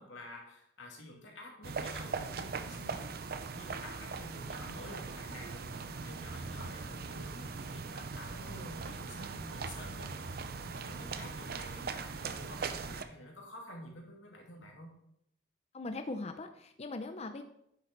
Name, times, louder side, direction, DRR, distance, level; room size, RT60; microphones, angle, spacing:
voice 1, 0.0-3.2 3.5-14.9, left 1 dB, 90° left, -1 dB, 2.7 m, -50 dB
sound 1, 1.6-13.0, right 4 dB, 55° right, 0.6 m, -40 dB
voice 2, 15.7-17.4, left 2 dB, 35° left, 7 dB, 0.6 m, -40 dB
10.0 x 6.8 x 4.6 m, 0.76 s
head